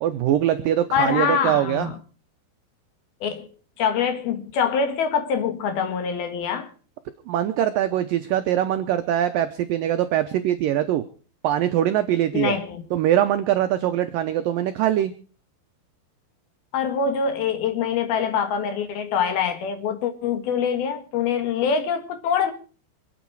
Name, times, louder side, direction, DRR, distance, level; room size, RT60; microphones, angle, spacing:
voice 1, 0.0-1.9 7.3-11.0 11.4-12.6 12.9-15.1, right 11 dB, 80° right, 2.0 m, -22 dB
voice 2, 0.9-2.0 3.2-3.5 3.8-6.7 12.3-12.8 16.7-22.5, left 6 dB, 65° left, 3.4 m, -24 dB
26.5 x 9.4 x 4.7 m
omnidirectional pair, 5.1 m